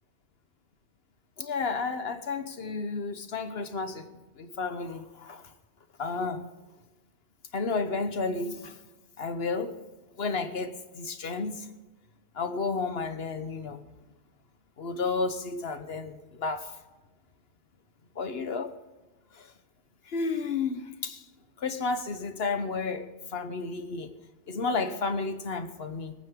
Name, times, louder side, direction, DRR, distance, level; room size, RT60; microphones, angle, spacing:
voice 1, 1.4-4.1 4.4-5.5 6.0-6.5 7.5-8.8 9.2-9.8 10.2-11.7 12.3-13.8 14.8-16.8 18.1-18.7 19.3-19.5 20.0-21.3 21.6-24.1 24.5-26.1, left 4 dB, 60° left, 1.2 m, -32 dB
24.0 x 9.1 x 3.7 m
omnidirectional pair, 1.2 m